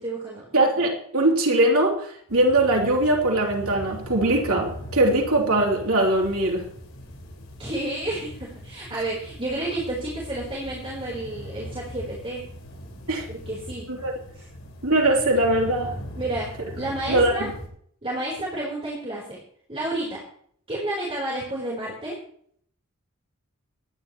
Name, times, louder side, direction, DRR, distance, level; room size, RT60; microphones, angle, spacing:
voice 1, 0.0-0.5 7.6-12.4 13.3-13.8 14.4-14.5 16.2-17.5 18.0-19.4 19.7-20.2 20.7-22.1, right 1 dB, 25° right, -4 dB, 3.9 m, -30 dB
voice 2, 0.5-6.6 13.1-13.2 13.9-14.1 14.8-15.9 17.1-17.5, right 1 dB, 75° right, -1 dB, 3.1 m, -21 dB
sound 1, 2.3-17.7, equal, 75° left, 7.3 m, -40 dB
24.0 x 10.5 x 3.1 m, 0.62 s
head